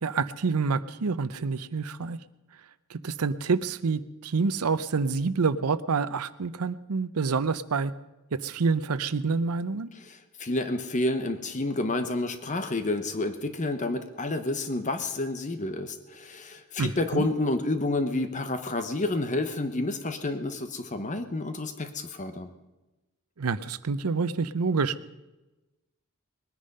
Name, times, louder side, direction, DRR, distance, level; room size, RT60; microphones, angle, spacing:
voice 1, 0.0-2.2 2.9-7.9 8.3-9.9 16.8-17.2 23.4-25.0, right 4 dB, 90° right, 15 dB, 0.7 m, -27 dB
voice 2, 10.0-22.5, left 2 dB, 35° left, 9 dB, 0.9 m, -29 dB
21.0 x 10.0 x 5.4 m, 1.1 s
head